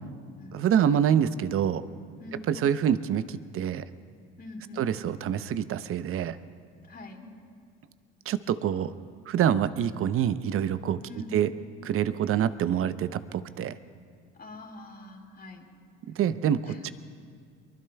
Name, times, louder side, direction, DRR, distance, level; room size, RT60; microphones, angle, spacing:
voice 1, 0.5-1.8 2.5-3.8 4.8-6.4 8.3-8.9 9.3-11.0 11.3-11.5 11.8-13.7 16.1-16.9, right 9 dB, 50° right, 14 dB, 0.8 m, -26 dB
voice 2, 4.4-4.8 6.8-7.3 11.1-11.4 14.3-15.6 16.6-16.9, left 2 dB, 35° left, -3 dB, 3.5 m, -44 dB
23.5 x 23.0 x 2.3 m, 2.2 s
hypercardioid pair, 65°, 29 cm